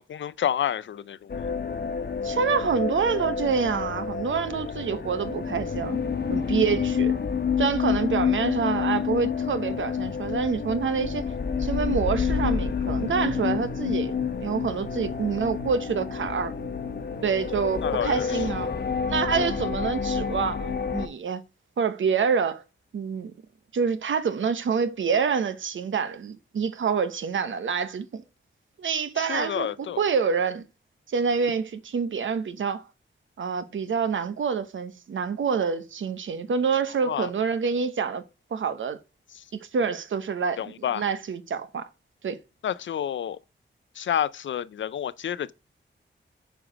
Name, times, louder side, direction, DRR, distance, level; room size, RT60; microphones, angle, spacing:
voice 1, 0.0-1.3 17.8-18.2 19.4-19.5 29.2-30.0 37.0-37.3 40.6-41.0 42.6-43.4 44.0-45.5, left 9 dB, 80° left, 0.4 m, -29 dB
sound 1, 1.3-21.1, left 6 dB, 60° left, 1.0 m, -28 dB
voice 2, 2.2-6.0 6.3-7.2 7.6-11.3 11.6-14.2 14.4-16.5 17.2-18.7 19.1-21.4 21.8-22.6 22.9-23.3 23.7-28.2 28.8-30.6 31.1-32.8 33.4-38.2 38.5-39.0 39.7-41.9 42.2-42.4, right 6 dB, 90° right, 0.9 m, -27 dB
8.8 x 4.7 x 5.0 m
wide cardioid pair, 100°, 20 cm